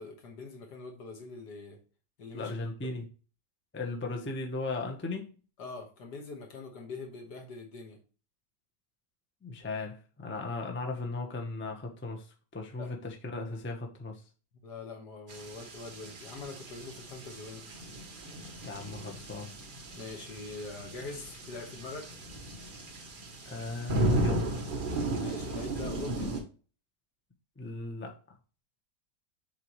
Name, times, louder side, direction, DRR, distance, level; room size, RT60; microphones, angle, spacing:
voice 1, 0.0-1.8 2.2-2.5 5.6-8.0 12.8-12.9 14.6-17.7 19.9-22.1 25.2-26.3, left 3 dB, 70° left, 2 dB, 2.0 m, -43 dB
voice 2, 2.3-3.1 3.7-5.3 9.4-12.3 12.5-14.2 18.6-19.5 23.5-24.6 27.6-28.2, left 3 dB, 10° left, 2 dB, 0.7 m, -37 dB
sound 1, 15.3-26.4, right 1 dB, 35° right, 1.0 m, -35 dB
6.8 x 4.6 x 3.1 m, 0.36 s
omnidirectional pair, 1.9 m